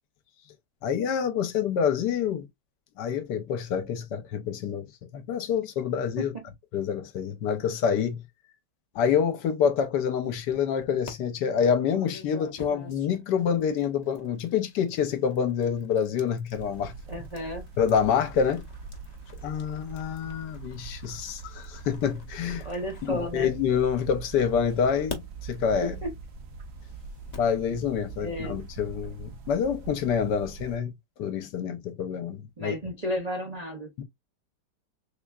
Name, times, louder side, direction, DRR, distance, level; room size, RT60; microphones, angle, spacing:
voice 1, 0.8-2.5 3.0-6.3 6.7-8.2 8.9-16.9 17.8-18.6 19.4-22.7 23.1-26.0 27.4-30.9 31.2-32.7 34.0-34.1, left 7 dB, 70° left, 1.3 m, -27 dB
sound 1, 10.2-11.1 11.8-23.9 24.5-27.6, left 4 dB, 40° left, 0.6 m, -47 dB
sound 2, 16.5-30.8, right 5 dB, 60° right, 0.9 m, -42 dB
voice 2, 17.1-17.7 22.6-23.5 25.8-26.1 28.2-28.6 32.6-33.9, equal, 80° right, 0.3 m, -33 dB
3.5 x 3.5 x 2.3 m
omnidirectional pair, 2.0 m